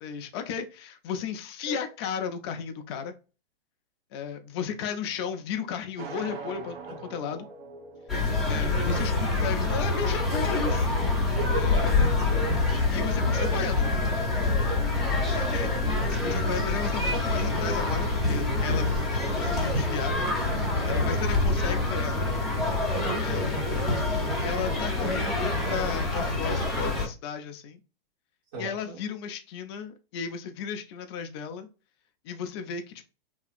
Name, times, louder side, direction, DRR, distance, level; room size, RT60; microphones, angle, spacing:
voice 1, 0.0-3.2 4.1-6.8 7.0-7.5 8.5-10.9 11.5-12.1 12.9-14.0 15.3-15.7 16.1-19.1 19.3-20.3 20.8-22.3 23.2-23.9 24.4-27.8 28.6-31.7 32.2-33.1, left 7 dB, 30° left, 0.3 m, -34 dB
sound 1, 6.0-10.0, right 4 dB, 70° right, 0.9 m, -43 dB
sound 2, 8.1-27.1, left 2 dB, ahead, 0.7 m, -26 dB
voice 2, 11.2-12.5 13.5-13.7 14.6-15.1 20.9-21.3 23.0-23.5 28.5-29.0, right 3 dB, 45° right, 1.3 m, -38 dB
2.8 x 2.4 x 2.4 m
hypercardioid pair, 135°, 29 cm